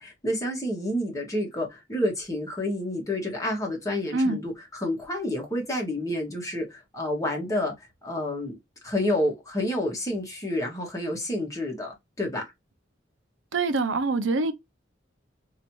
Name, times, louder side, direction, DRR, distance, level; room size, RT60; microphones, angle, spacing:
voice 1, 0.0-8.6 8.8-12.5, left 1 dB, 20° left, 1.5 m, -29 dB
voice 2, 13.5-14.5, right 3 dB, 80° right, 0.6 m, -24 dB
3.1 x 2.8 x 2.9 m
head